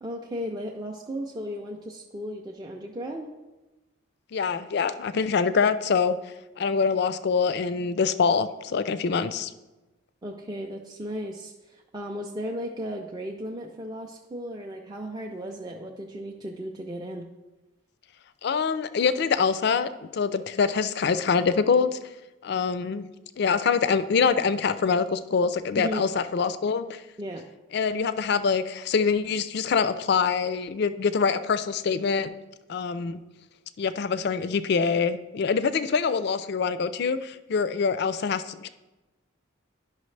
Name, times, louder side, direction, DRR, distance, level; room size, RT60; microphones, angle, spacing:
voice 1, 0.0-3.3 10.2-17.3 25.8-26.1 27.2-27.5, equal, 20° right, 0 dB, 0.4 m, -35 dB
voice 2, 4.3-6.2 6.6-9.5 18.4-22.0 22.4-23.1 23.4-27.0 27.7-32.3 32.7-33.2 33.8-38.7, left 5 dB, 50° left, 13 dB, 0.3 m, -25 dB
10.5 x 5.6 x 3.2 m, 1.1 s
head